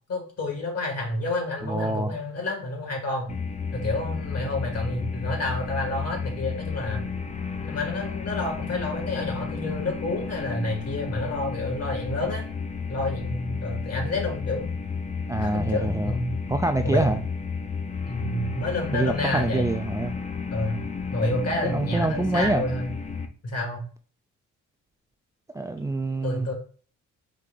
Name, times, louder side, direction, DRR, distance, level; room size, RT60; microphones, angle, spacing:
voice 1, 0.1-3.3 3.7-7.0 7.6-12.4 12.9-14.7 15.4-16.4 16.8-17.2 18.1-19.7 20.5-20.8 21.1-22.9 23.4-23.8 26.2-26.5, left 2 dB, 55° left, 2.0 m, -29 dB
voice 2, 1.6-2.1 15.3-16.2 16.5-17.2 18.9-20.1 21.6-22.6 25.5-26.5, right 2 dB, 10° right, 0.3 m, -26 dB
sound 1, 3.3-23.3, left 5 dB, 25° left, 0.6 m, -32 dB
4.9 x 2.8 x 3.8 m
cardioid pair, 90°, 30 cm